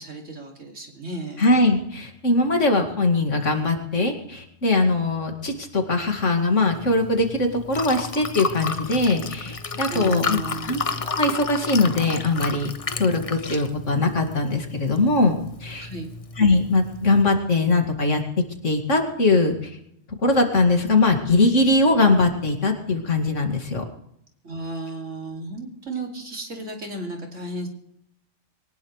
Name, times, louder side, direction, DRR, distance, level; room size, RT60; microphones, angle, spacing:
voice 1, 0.0-1.4 9.9-10.7 15.8-16.1 24.4-27.7, right 2 dB, 75° right, 1 dB, 3.1 m, -33 dB
voice 2, 1.4-12.7 13.0-15.9 16.4-18.2 18.6-19.7 20.2-23.8, left 2 dB, 75° left, 3 dB, 2.7 m, -21 dB
Liquid, 6.7-17.2, left 4 dB, 35° left, 0.8 m, -32 dB
23.0 x 19.0 x 3.3 m, 0.76 s
omnidirectional pair, 1.3 m